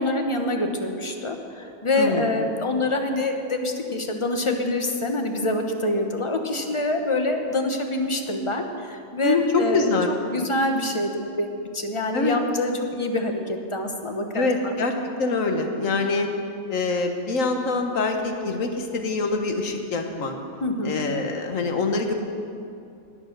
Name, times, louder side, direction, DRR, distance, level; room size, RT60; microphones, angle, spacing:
voice 1, 0.0-9.9 10.3-14.7 20.6-20.9, left 2 dB, 25° left, 4 dB, 1.0 m, -26 dB
voice 2, 1.9-2.4 9.2-9.4 9.7-10.1 12.1-12.4 14.3-14.9 15.2-16.3 16.7-20.3 20.8-22.1, left 3 dB, 65° left, 4 dB, 1.6 m, -24 dB
19.5 x 7.2 x 6.6 m, 2.5 s
omnidirectional pair, 1.5 m